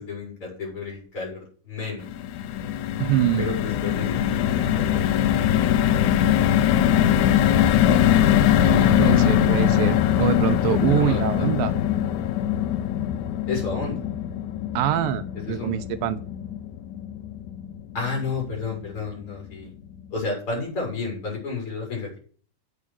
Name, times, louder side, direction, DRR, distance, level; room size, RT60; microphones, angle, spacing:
voice 1, 0.0-2.1 3.4-5.9 10.9-11.5 11.8-12.0 13.5-14.1 15.3-15.8 17.9-19.7 20.1-22.2, left 3 dB, 35° left, -1 dB, 6.1 m, -32 dB
sound 1, 2.0-18.3 18.7-18.8 19.1-19.3, left 10 dB, 80° left, 1.8 m, -22 dB
voice 2, 3.0-3.4 8.7-11.7 14.7-16.2, right 12 dB, 75° right, 10 dB, 2.5 m, -24 dB
8.5 x 8.2 x 6.1 m, 0.43 s
omnidirectional pair, 4.2 m